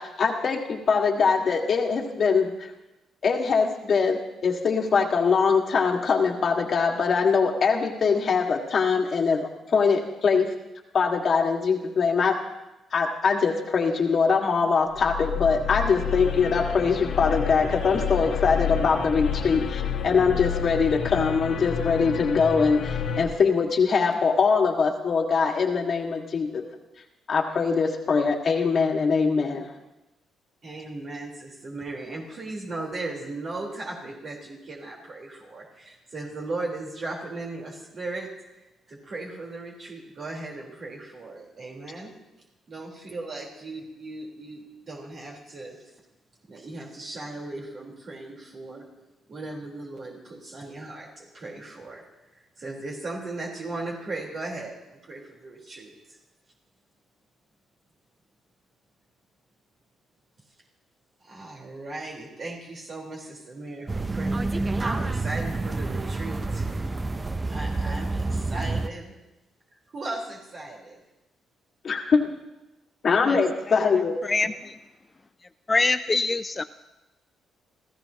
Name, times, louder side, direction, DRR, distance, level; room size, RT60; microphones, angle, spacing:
voice 1, 0.0-2.7 3.2-10.5 10.9-12.4 12.9-26.6 27.3-29.7 71.8-72.3 73.0-74.2, left 5 dB, 50° left, 2 dB, 1.9 m, -23 dB
sound 1, 14.9-23.3, left 7 dB, 80° left, 1.9 m, -30 dB
voice 2, 30.6-38.3 38.9-42.1 42.7-45.8 46.5-48.9 49.3-52.0 52.6-56.2 61.2-66.9 67.5-69.2 69.9-71.0, right 2 dB, 50° right, -2 dB, 4.1 m, -37 dB
sound 2, 63.9-68.9, right 3 dB, 25° right, 0.7 m, -28 dB
voice 3, 74.2-74.7 75.7-76.6, left 3 dB, 25° left, 11 dB, 0.5 m, -24 dB
29.0 x 15.0 x 3.0 m, 1.0 s
cardioid pair, 90°, 0 cm